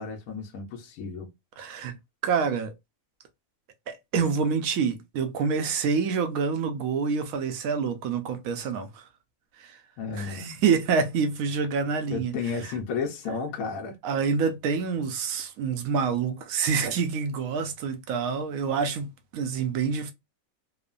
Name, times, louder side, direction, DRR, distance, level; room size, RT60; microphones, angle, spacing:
voice 1, 0.0-1.3 10.0-10.6 12.1-14.0, left 5 dB, 75° left, 1.0 m, -33 dB
voice 2, 1.6-1.9 2.2-2.7 3.9-9.0 9.6-9.8 10.2-12.3 12.6-12.7 14.0-19.1 19.3-20.1, right 5 dB, 75° right, 1.0 m, -27 dB
3.0 x 2.1 x 2.4 m
omnidirectional pair, 1.5 m